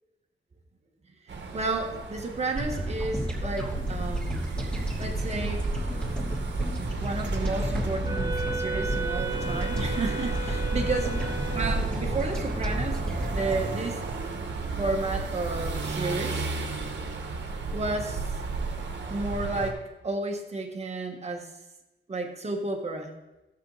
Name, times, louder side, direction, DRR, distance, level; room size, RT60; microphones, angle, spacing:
sound 1, 1.3-19.7, right 4 dB, 60° right, 1.5 m, -34 dB
voice 1, 1.5-4.4 5.0-5.7 6.8-11.1 11.5-13.0 13.3-14.0 14.8-16.5 17.7-18.2 19.1-19.8 20.0-21.5 22.1-23.1, right 2 dB, 30° right, 2 dB, 1.5 m, -32 dB
sound 2, 2.6-15.0, right 1 dB, 5° left, 2.9 m, -31 dB
Wind instrument woodwind instrument, 8.0-11.9, right 3 dB, 15° right, 3.2 m, -35 dB
16.5 x 7.0 x 4.1 m, 0.99 s
wide cardioid pair, 180°, 21 cm